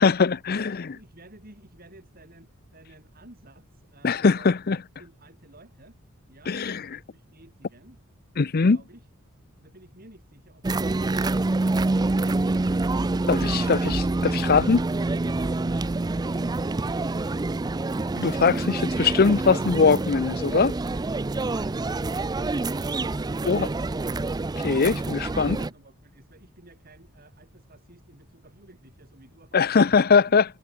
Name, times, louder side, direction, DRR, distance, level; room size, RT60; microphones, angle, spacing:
voice 1, 0.0-0.8 4.0-4.8 6.5-6.8 8.4-8.8 13.3-14.8 18.2-20.7 23.5-23.7 24.6-25.6 29.5-30.4, left 5 dB, 45° left, 0.6 m, -21 dB
voice 2, 0.9-6.0 6.2-8.0 8.7-9.1 9.5-14.3 25.1-29.9 30.2-30.4, right 1 dB, 45° right, 7.3 m, -53 dB
sound 1, 10.6-25.7, right 2 dB, 20° right, 0.4 m, -26 dB
head